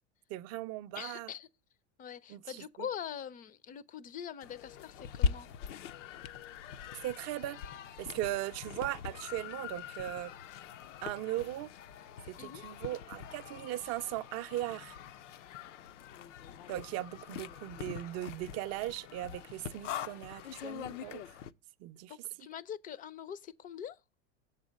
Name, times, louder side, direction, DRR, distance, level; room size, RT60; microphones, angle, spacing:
voice 1, 0.3-1.3 2.3-2.9 7.0-7.6 8.0-10.3 11.0-11.7 12.3-15.0 16.7-21.3 21.8-22.1, right 15 dB, 45° right, 0.5 m, -38 dB
voice 2, 0.9-1.5 2.0-5.5 12.4-12.6 22.1-24.0, left 8 dB, 25° left, 0.4 m, -43 dB
sound 1, 4.4-21.5, left 7 dB, 85° left, 0.6 m, -42 dB
7.1 x 4.0 x 6.2 m
supercardioid pair, 115°, 35 cm